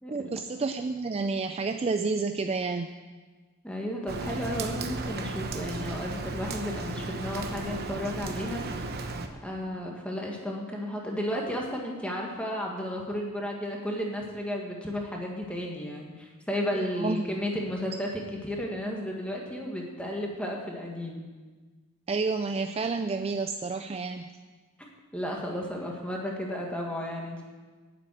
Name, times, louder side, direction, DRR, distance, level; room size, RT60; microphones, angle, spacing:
voice 1, 0.1-2.9 9.6-9.9 16.8-17.2 22.1-24.3, right 4 dB, 25° right, 7 dB, 0.3 m, -30 dB
voice 2, 3.6-9.0 9.4-21.2 25.1-27.4, equal, 5° left, -1 dB, 1.7 m, -33 dB
Rain, 4.1-9.3, right 2 dB, 45° right, 0.9 m, -35 dB
9.3 x 7.5 x 9.3 m, 1.4 s
head